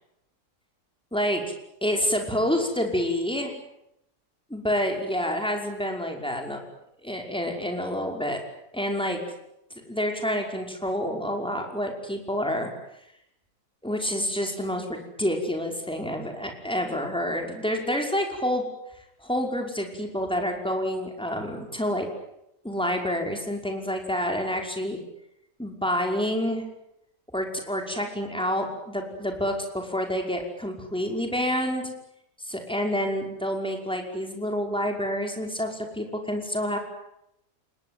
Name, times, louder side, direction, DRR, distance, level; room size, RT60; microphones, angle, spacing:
voice 1, 1.1-1.4 1.8-3.5 4.5-6.6 7.0-8.4 8.7-9.2 9.9-12.7 13.8-18.6 19.2-22.1 22.6-25.0 25.6-26.6 27.3-31.9 32.4-36.8, equal, 5° left, 2 dB, 5.5 m, -28 dB
29.5 x 20.0 x 9.5 m, 0.82 s
omnidirectional pair, 1.6 m